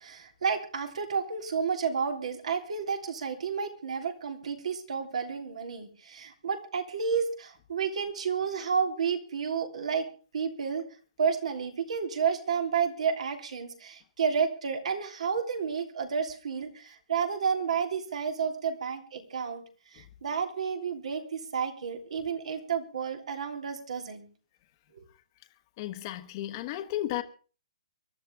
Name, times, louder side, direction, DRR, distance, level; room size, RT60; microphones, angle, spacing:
voice 1, 0.0-10.1 10.3-10.8 11.2-19.6 19.9-24.3 25.0-25.1, right 6 dB, 75° right, 3.2 m, -31 dB
voice 2, 25.8-27.2, left 14 dB, 35° left, 1.2 m, -33 dB
24.0 x 11.5 x 3.5 m
hypercardioid pair, 145°, 4 cm